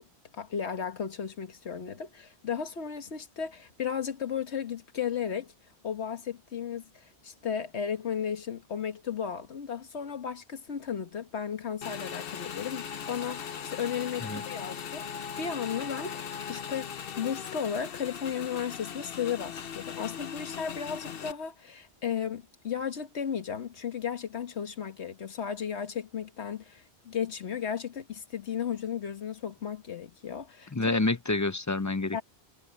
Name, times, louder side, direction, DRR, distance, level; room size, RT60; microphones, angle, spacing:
voice 1, 0.3-5.5 5.8-31.0 32.1-32.2, left 7 dB, 85° left, 1.6 m, -35 dB
Motorcycle / Engine, 11.8-21.3, left 7 dB, 60° left, 0.9 m, -39 dB
voice 2, 30.7-32.2, left 2 dB, 30° left, 0.3 m, -28 dB
omnidirectional pair, 1.1 m